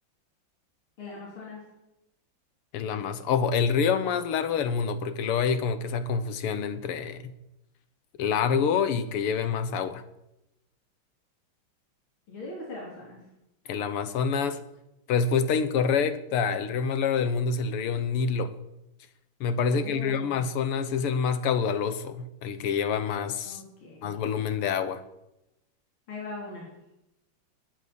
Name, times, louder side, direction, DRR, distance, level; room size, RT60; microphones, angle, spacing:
voice 1, 1.0-1.6 12.3-13.2 19.7-20.4 23.5-24.1 26.1-26.7, left 2 dB, 65° left, -3 dB, 4.3 m, -40 dB
voice 2, 2.7-7.3 8.2-10.0 13.7-14.6 15.1-18.6 19.4-23.6 24.0-25.0, left 6 dB, 85° left, 12 dB, 2.0 m, -27 dB
20.5 x 9.9 x 6.9 m, 0.91 s
omnidirectional pair, 2.4 m